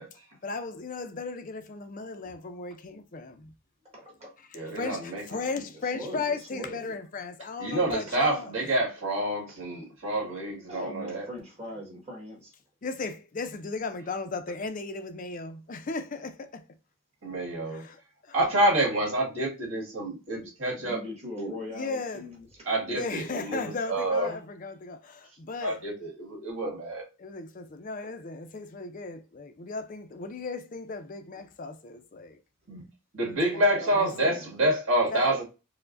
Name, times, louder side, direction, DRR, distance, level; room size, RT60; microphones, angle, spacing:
voice 1, 0.1-3.5 4.8-8.5 12.8-16.7 17.7-18.4 21.7-22.3 22.9-25.8 27.2-32.4 33.3-33.6 33.9-34.4 35.1-35.3, left 4 dB, 35° left, 0.4 m, -36 dB
voice 2, 3.9-4.3 5.3-5.7 5.9-7.0 8.1-8.2 10.7-12.5 20.8-22.5 33.5-34.4, left 1 dB, 30° right, 1.4 m, -41 dB
voice 3, 4.5-5.2 7.6-11.2 17.2-17.9 18.3-21.0 21.4-21.5 22.6-24.4 25.6-27.1 32.7-32.8 33.1-35.4, right 1 dB, 60° right, 1.8 m, -28 dB
4.5 x 2.1 x 2.5 m
head